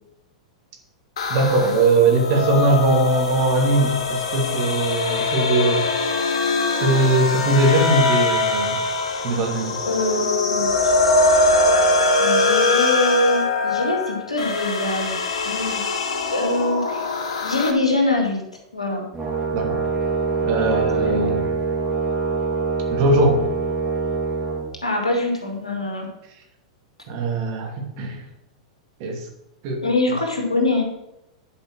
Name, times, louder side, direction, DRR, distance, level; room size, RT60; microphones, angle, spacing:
sound 1, 1.2-17.7, left 3 dB, 65° left, 1.5 m, -22 dB
voice 1, 1.3-5.8 6.7-8.7 9.2-9.7 19.5-19.8 20.4-21.4 22.9-23.5 27.1-28.2 29.0-29.3 29.6-29.8, right 2 dB, 50° right, 2 dB, 2.5 m, -20 dB
voice 2, 9.8-10.9 12.2-15.8 16.3-17.0 17.4-18.4 18.7-19.0 21.0-21.2 24.8-26.1 29.8-30.9, left 2 dB, 90° left, 0 dB, 2.7 m, -23 dB
Brass instrument, 19.1-24.6, right 4 dB, 20° right, 3.0 m, -24 dB
10.5 x 5.5 x 6.2 m, 0.86 s
figure-of-eight pair, 100°, 3 cm